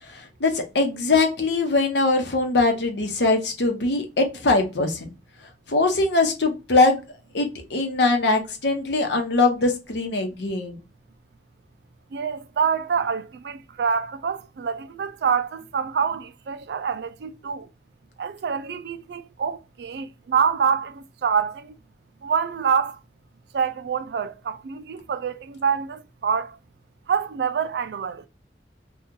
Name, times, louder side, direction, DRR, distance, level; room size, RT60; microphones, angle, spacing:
voice 1, 0.1-5.1 5.7-7.0 7.3-10.8, left 3 dB, 75° left, 0.9 m, -22 dB
voice 2, 12.1-17.7 18.2-21.7 22.2-23.0 23.5-26.6 27.1-28.3, right 6 dB, 65° right, 0.3 m, -26 dB
2.9 x 2.3 x 3.6 m
head